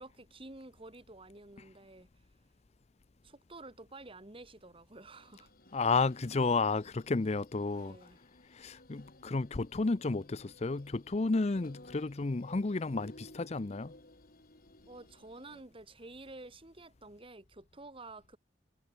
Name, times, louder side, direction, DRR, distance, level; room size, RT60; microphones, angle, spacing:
voice 1, 0.0-2.1 3.2-5.5 7.8-8.2 14.9-18.4, right 2 dB, 30° right, 2.3 m, -50 dB
sound 1, 5.1-15.6, left 1 dB, 50° left, 5.1 m, -57 dB
voice 2, 5.7-8.0 8.5-13.9, left 3 dB, 35° left, 0.6 m, -32 dB
head